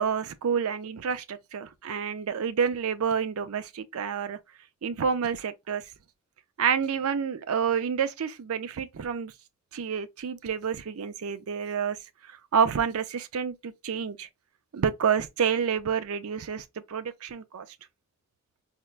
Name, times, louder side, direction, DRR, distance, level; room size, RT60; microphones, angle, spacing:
voice 1, 0.0-4.4 4.8-5.8 6.6-9.3 9.7-12.0 12.3-14.3 14.7-17.7, right 7 dB, 75° right, 0.4 m, -28 dB
4.2 x 2.2 x 2.4 m
head